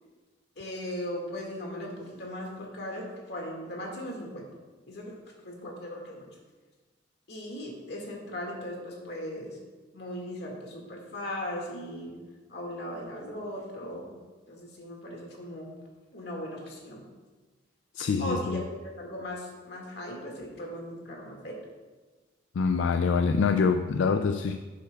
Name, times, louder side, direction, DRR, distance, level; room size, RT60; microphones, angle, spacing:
voice 1, 0.6-4.5 4.9-5.2 5.4-6.3 7.3-9.6 9.9-12.2 12.5-14.1 14.5-15.7 16.1-17.1 18.2-21.6, equal, 60° left, -1 dB, 2.0 m, -38 dB
voice 2, 17.9-18.6 22.5-24.6, left 5 dB, 80° left, 8 dB, 0.3 m, -25 dB
11.5 x 7.7 x 2.3 m, 1.3 s
head